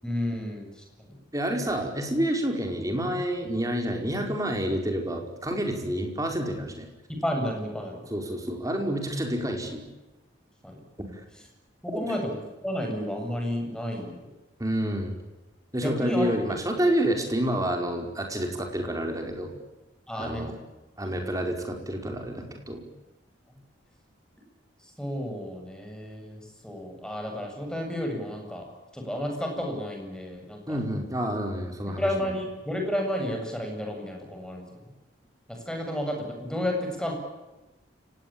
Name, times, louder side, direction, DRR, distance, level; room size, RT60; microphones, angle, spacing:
voice 1, 0.0-1.2 7.2-8.0 10.6-10.8 11.8-12.3 12.6-14.3 15.8-16.3 20.1-20.4 21.0-21.1 24.8-28.7 28.9-30.8 32.0-34.8 35.5-37.1, left 1 dB, 5° left, 2 dB, 7.7 m, -32 dB
voice 2, 1.3-6.9 8.1-9.8 11.9-12.0 14.6-15.2 15.7-19.5 20.2-20.5 21.0-22.8 30.7-32.1, right 1 dB, 20° right, 3 dB, 5.1 m, -28 dB
29.5 x 18.5 x 8.9 m, 1.1 s
head